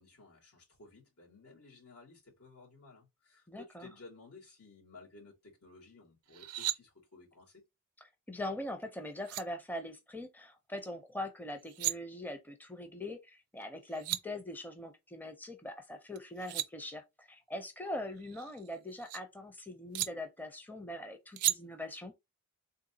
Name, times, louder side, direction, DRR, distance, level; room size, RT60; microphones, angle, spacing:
voice 1, 0.0-7.6, left 3 dB, 85° left, 2.2 m, -56 dB
voice 2, 3.5-3.9 8.3-22.1, left 1 dB, 10° left, 0.5 m, -42 dB
sound 1, 6.3-6.8 8.8-8.9 9.2-9.4 11.5-11.9 13.6-13.7 13.9-14.2 16.1-16.7 18.2-19.2 19.9-20.1 21.4-21.6, right 16 dB, 70° right, 0.4 m, -35 dB
3.8 x 2.8 x 2.7 m
head